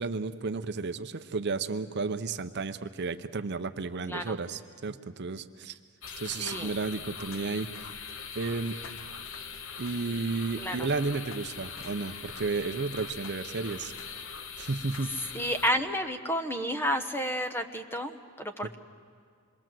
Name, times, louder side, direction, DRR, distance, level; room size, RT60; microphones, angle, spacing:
voice 1, 0.0-5.7 6.2-7.7 8.3-8.7 9.8-13.9 14.6-15.1, right 4 dB, 50° right, 10 dB, 0.6 m, -32 dB
sound 1, 6.0-15.7, left 6 dB, 60° left, 1.0 m, -41 dB
voice 2, 6.4-6.7 10.6-10.9 15.3-18.8, equal, 10° left, 8 dB, 0.9 m, -31 dB
27.0 x 22.0 x 7.6 m, 2.1 s
head